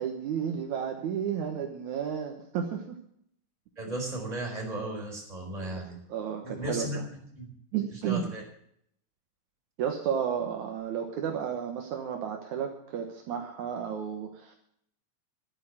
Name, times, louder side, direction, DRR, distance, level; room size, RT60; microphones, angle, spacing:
voice 1, 0.0-3.0 5.6-5.8 6.1-7.1 7.7-8.2 9.8-14.5, right 8 dB, 70° right, 3 dB, 2.5 m, -32 dB
voice 2, 3.8-6.0 6.4-7.5 8.1-8.4, right 1 dB, 10° right, -1 dB, 4.3 m, -35 dB
11.5 x 9.3 x 9.1 m, 0.69 s
omnidirectional pair, 3.8 m